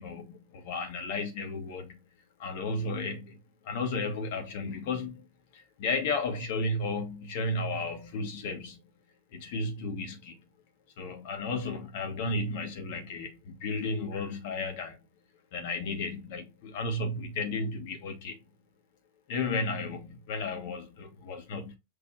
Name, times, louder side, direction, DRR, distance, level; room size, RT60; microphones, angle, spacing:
voice 1, 0.0-2.0 2.4-3.4 3.6-5.2 5.5-8.8 9.3-10.4 11.0-15.0 15.5-18.4 19.3-21.8, left 3 dB, 50° left, 1.1 m, -33 dB
6.2 x 2.7 x 3.0 m
figure-of-eight pair, 90°, 0 cm